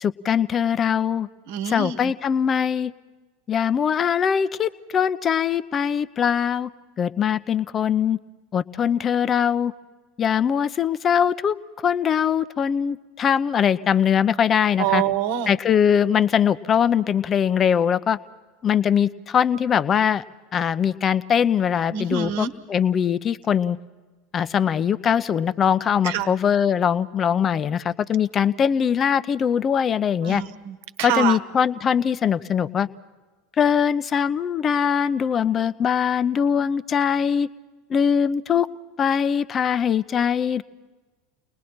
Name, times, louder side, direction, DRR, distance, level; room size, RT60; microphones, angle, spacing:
voice 1, 0.0-1.3 1.6-2.9 3.5-6.7 7.0-8.2 8.5-9.7 10.2-15.0 15.5-18.2 18.6-20.2 20.5-23.8 24.3-30.4 31.0-32.9 33.6-37.5 37.9-38.7 39.0-40.6, left 8 dB, 30° left, 15 dB, 0.7 m, -21 dB
voice 2, 1.5-2.1 14.8-15.5 21.9-22.5 26.0-26.3 30.2-31.4, right 9 dB, 60° right, 9 dB, 1.2 m, -26 dB
30.0 x 20.5 x 4.3 m, 1.3 s
figure-of-eight pair, 80°, 0 cm